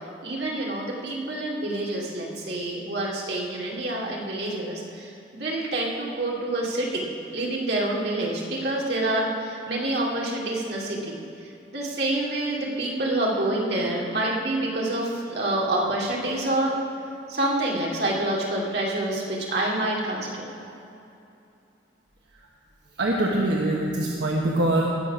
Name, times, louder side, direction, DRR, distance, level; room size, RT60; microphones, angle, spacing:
voice 1, 0.2-7.0 7.3-11.2 11.7-16.8 17.3-20.5, right 1 dB, 65° right, -3 dB, 2.4 m, -27 dB
voice 2, 23.0-24.8, right 1 dB, 80° right, -2 dB, 1.2 m, -23 dB
18.5 x 6.7 x 6.0 m, 2.7 s
head